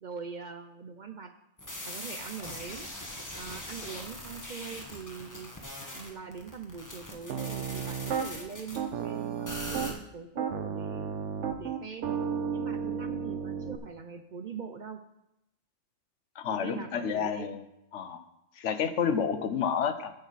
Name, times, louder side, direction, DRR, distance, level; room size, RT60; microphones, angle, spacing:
voice 1, 0.0-1.3 1.8-2.9 3.3-5.5 5.9-11.2 11.6-12.2 12.5-15.0 16.5-17.6 19.6-19.7, right 6 dB, 50° right, 8 dB, 0.6 m, -42 dB
sound 1, 1.6-8.8 9.4-9.9, left 1 dB, 15° left, 1.3 m, -41 dB
Piano, 7.3-8.3 8.8-10.0 10.4-13.8, right 7 dB, 75° right, 1.0 m, -33 dB
voice 2, 16.4-17.6 17.9-18.2 18.6-20.1, left 7 dB, 75° left, 10 dB, 1.1 m, -30 dB
15.5 x 6.4 x 4.1 m, 0.87 s
omnidirectional pair, 1.2 m